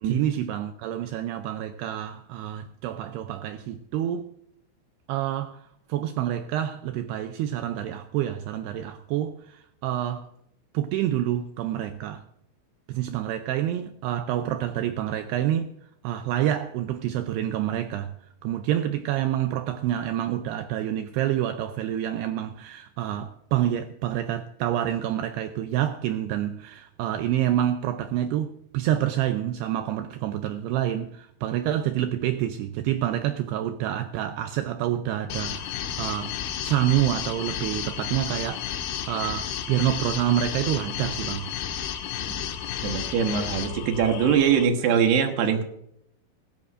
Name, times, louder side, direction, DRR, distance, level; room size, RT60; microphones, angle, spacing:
voice 1, 0.0-4.3 5.1-10.3 10.7-12.2 12.9-36.4 36.6-41.5, right 12 dB, 85° right, 2.3 m, -28 dB
sound 1, 35.3-44.6, left 9 dB, 85° left, 3.6 m, -32 dB
voice 2, 42.8-45.6, right 7 dB, 70° right, 3.0 m, -22 dB
17.0 x 14.0 x 2.5 m
omnidirectional pair, 5.4 m